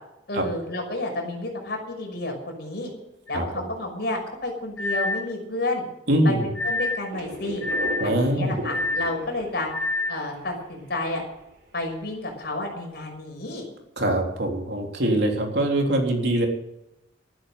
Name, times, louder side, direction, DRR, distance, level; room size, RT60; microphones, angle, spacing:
voice 1, 0.3-2.9 3.3-5.8 6.2-7.6 8.0-9.7 10.1-11.2 11.7-13.6, left 2 dB, 60° left, 2 dB, 6.0 m, -30 dB
sound 1, 3.3-3.4 4.8-5.3 6.5-7.1 7.6-8.1 8.7-9.2 9.7-10.2, left 2 dB, 85° left, 1.2 m, -27 dB
voice 2, 3.3-3.7 6.1-6.5 8.0-8.6 14.0-16.5, right 1 dB, 60° right, 1 dB, 3.6 m, -23 dB
sound 2, 7.1-12.1, right 1 dB, 85° right, 4.0 m, -37 dB
14.0 x 12.0 x 8.0 m, 0.90 s
head